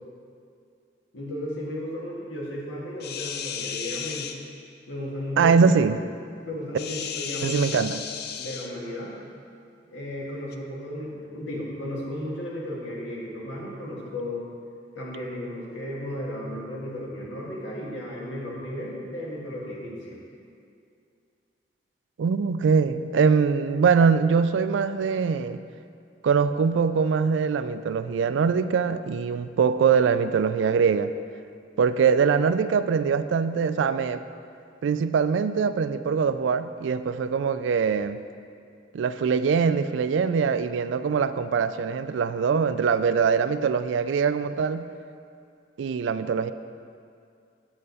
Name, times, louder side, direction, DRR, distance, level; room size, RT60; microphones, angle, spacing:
voice 1, 1.1-4.3 4.9-5.6 6.4-7.7 8.4-9.1 9.9-14.4 15.0-20.2, left 1 dB, 85° left, -4 dB, 1.8 m, -34 dB
sound 1, 3.0-4.4 6.8-8.7 10.5-10.6, left 7 dB, 55° left, 0.4 m, -34 dB
voice 2, 5.4-6.0 7.4-8.0 22.2-25.6 26.2-31.1 31.8-34.2 34.8-38.2 38.9-44.9 45.8-46.5, right 6 dB, 80° right, 12 dB, 0.3 m, -23 dB
7.7 x 7.6 x 4.1 m, 2.4 s
head